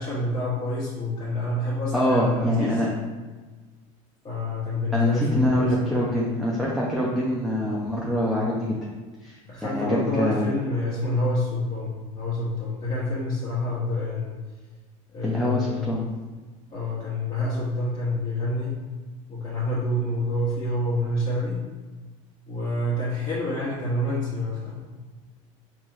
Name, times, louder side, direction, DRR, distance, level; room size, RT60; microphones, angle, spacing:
voice 1, 0.0-2.8 4.2-6.1 9.5-14.4 15.1-16.1 16.7-18.8 19.3-21.6 22.5-24.8, left 1 dB, 25° left, -9 dB, 1.1 m, -27 dB
voice 2, 1.9-2.9 4.9-8.8 9.2-10.4 15.2-16.0, equal, ahead, -5 dB, 0.6 m, -25 dB
4.7 x 2.9 x 2.6 m, 1.3 s
supercardioid pair, 100°, 17 cm